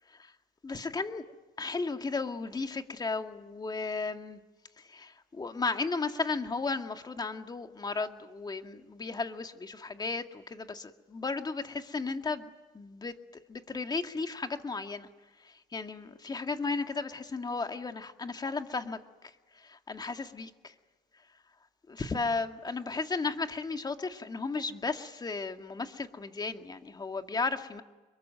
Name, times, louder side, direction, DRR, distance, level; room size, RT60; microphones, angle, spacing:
voice 1, 0.6-1.3 1.6-4.4 4.9-12.5 12.7-13.1 13.5-15.1 15.4-19.0 19.6-20.7 21.9-27.8, left 4 dB, 25° left, 6 dB, 2.1 m, -34 dB
26.5 x 23.0 x 9.3 m, 1.2 s
cardioid pair, 110°, 17 cm